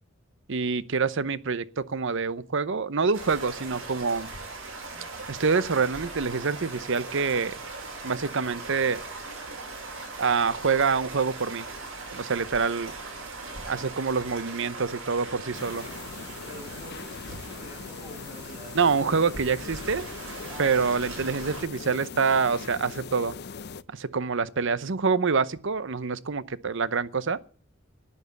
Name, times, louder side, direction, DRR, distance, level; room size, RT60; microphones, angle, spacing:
voice 1, 0.5-4.3 5.3-7.6 8.0-9.0 10.2-11.7 12.1-12.9 13.7-15.9 18.7-20.0 20.6-23.3 23.9-27.4, right 5 dB, 65° right, 0.8 m, -26 dB
sound 1, 3.1-21.6, right 3 dB, 90° right, 7.5 m, -40 dB
sound 2, 15.5-23.8, left 5 dB, 55° left, 0.6 m, -41 dB
voice 2, 16.4-19.2 20.5-20.9, right 1 dB, 10° right, 7.0 m, -46 dB
12.0 x 9.9 x 8.2 m
head